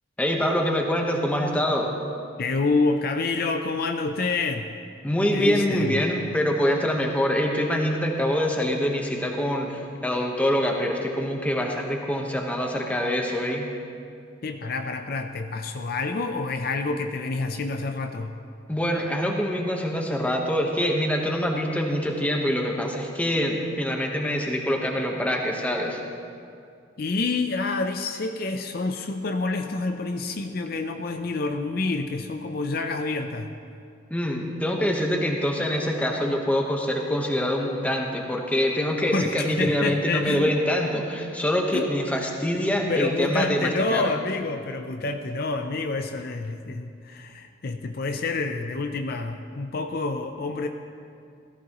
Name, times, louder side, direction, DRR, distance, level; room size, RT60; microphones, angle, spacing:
voice 1, 0.2-1.9 5.0-13.7 18.7-26.0 34.1-44.1, equal, 10° left, 1 dB, 1.1 m, -25 dB
voice 2, 2.4-4.7 5.3-6.0 14.4-18.3 27.0-33.5 39.1-40.6 41.7-41.9 42.7-50.7, left 3 dB, 50° left, 6 dB, 0.5 m, -28 dB
17.0 x 14.5 x 3.0 m, 2.4 s
head